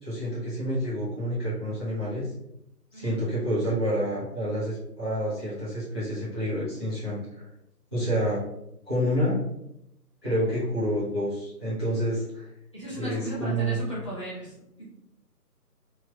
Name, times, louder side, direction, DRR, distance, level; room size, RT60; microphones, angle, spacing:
voice 1, 0.0-2.3 2.9-7.4 7.9-8.4 8.9-9.4 10.2-12.5 13.0-13.8, equal, 15° right, -11 dB, 0.7 m, -28 dB
voice 2, 12.7-14.9, right 1 dB, 20° left, -11 dB, 0.8 m, -36 dB
3.1 x 2.8 x 3.6 m, 0.80 s
figure-of-eight pair, 150°, 49 cm